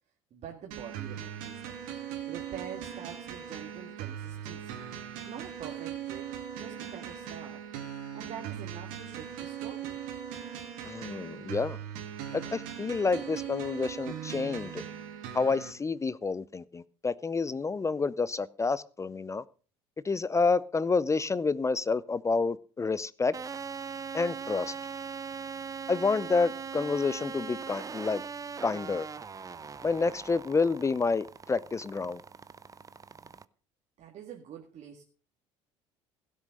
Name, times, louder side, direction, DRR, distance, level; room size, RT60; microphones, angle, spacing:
voice 1, 0.3-1.7 2.3-4.8 5.3-7.6 8.1-10.0 34.0-35.0, right 8 dB, 50° right, 1.9 m, -45 dB
sound 1, 0.7-15.7, right 9 dB, 65° right, 2.4 m, -40 dB
voice 2, 10.8-11.8 12.3-14.8 15.3-19.4 20.0-23.3 24.1-24.7 25.9-28.2 28.6-29.1 29.8-32.2, left 4 dB, 20° left, 0.6 m, -29 dB
sound 2, 23.3-33.5, right 6 dB, 25° right, 0.6 m, -41 dB
16.5 x 6.4 x 6.5 m
hypercardioid pair, 65°, 15 cm